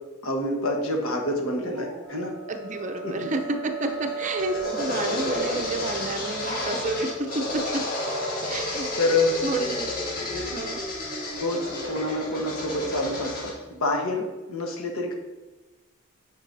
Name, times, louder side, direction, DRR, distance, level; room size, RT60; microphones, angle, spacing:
voice 1, 0.2-2.3 3.0-3.3 9.0-9.4 10.3-10.5 11.4-15.1, left 2 dB, 80° left, 1 dB, 1.3 m, -27 dB
voice 2, 1.6-2.1 2.5-7.8 8.5-8.9 9.4-9.9 10.5-10.8, right 2 dB, 35° right, 5 dB, 0.6 m, -30 dB
sound 1, 2.0-11.8, right 4 dB, ahead, 1.0 m, -37 dB
sound 2, 3.9-13.5, left 2 dB, 45° left, 2.0 m, -31 dB
9.4 x 5.3 x 2.7 m, 1.2 s
head